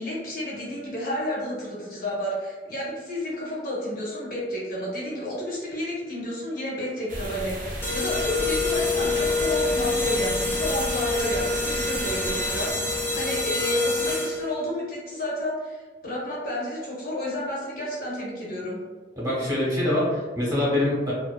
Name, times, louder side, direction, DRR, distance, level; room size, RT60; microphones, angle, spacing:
voice 1, 0.0-18.8, equal, 55° left, -5 dB, 0.8 m, -31 dB
sound 1, 7.1-12.7, right 1 dB, 50° right, 0.5 m, -34 dB
sound 2, 7.8-14.6, left 3 dB, 15° left, 0.4 m, -26 dB
voice 2, 19.2-21.1, left 1 dB, 20° right, -7 dB, 0.8 m, -24 dB
2.5 x 2.4 x 2.2 m, 1.4 s
head